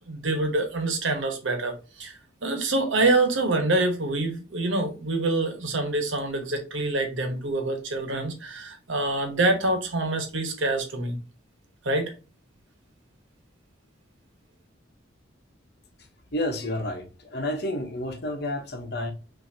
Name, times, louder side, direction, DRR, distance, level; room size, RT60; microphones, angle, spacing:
voice 1, 0.1-11.2 11.8-12.1, right 2 dB, 80° right, 1.1 m, -26 dB
voice 2, 16.3-19.1, left 1 dB, 55° left, 1.0 m, -30 dB
5.9 x 2.8 x 2.8 m
head